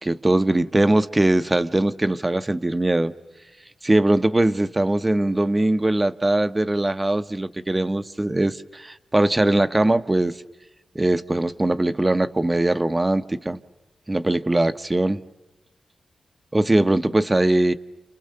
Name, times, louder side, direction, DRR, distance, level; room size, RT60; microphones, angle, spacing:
voice 1, 0.0-3.1 3.8-10.4 10.9-13.6 14.1-15.2 16.5-17.7, right 1 dB, 20° right, 0.8 m, -21 dB
29.5 x 29.0 x 6.7 m
wide cardioid pair, 90°, 0 cm